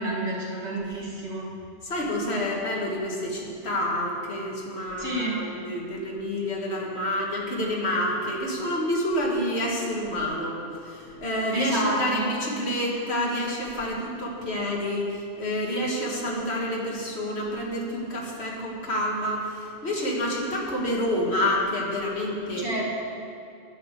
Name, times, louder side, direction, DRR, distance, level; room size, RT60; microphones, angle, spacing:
voice 1, 0.0-1.5 5.0-5.4 11.5-12.3 22.6-22.8, right 1 dB, 65° right, -5 dB, 2.4 m, -29 dB
voice 2, 1.8-22.7, left 1 dB, 65° left, -2 dB, 2.0 m, -28 dB
10.0 x 6.4 x 8.2 m, 2.6 s
omnidirectional pair, 1.2 m